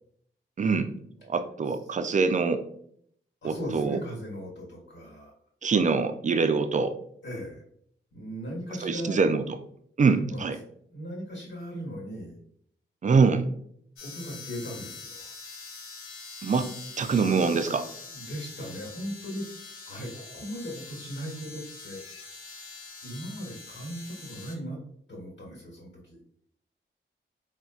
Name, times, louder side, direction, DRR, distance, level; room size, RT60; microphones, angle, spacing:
voice 1, 0.6-0.9 1.3-2.6 3.4-4.0 5.6-6.9 8.8-9.6 10.0-10.6 13.0-13.5 16.4-16.7 17.0-17.9, right 4 dB, 35° right, 8 dB, 0.4 m, -24 dB
voice 2, 3.4-5.3 7.2-7.6 8.1-9.2 10.3-10.5 10.9-12.4 14.0-15.3 18.1-19.4 19.9-22.0 23.0-24.8 25.1-26.2, equal, 60° left, -3 dB, 1.3 m, -38 dB
sound 1, 14.0-24.5, left 4 dB, 90° left, 0.7 m, -44 dB
3.9 x 2.2 x 2.3 m, 0.66 s
cardioid pair, 60°, 21 cm